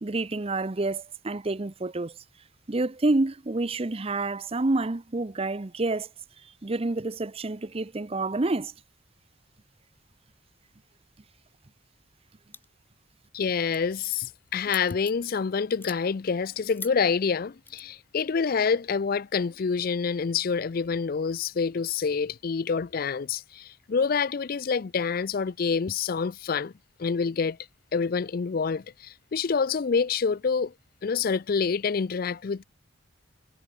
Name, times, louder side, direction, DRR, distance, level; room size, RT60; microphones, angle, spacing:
voice 1, 0.0-2.1 2.7-6.1 6.4-8.7, right 2 dB, 30° right, 0.6 m, -28 dB
sound 1, 12.5-12.9 13.2-13.4 13.7-15.3 15.7-16.0 16.7-16.9 17.7-17.8, left 4 dB, 10° left, 2.0 m, -42 dB
voice 2, 13.3-26.7 27.0-27.6 27.9-30.7 31.0-32.6, left 5 dB, 45° left, 0.4 m, -27 dB
head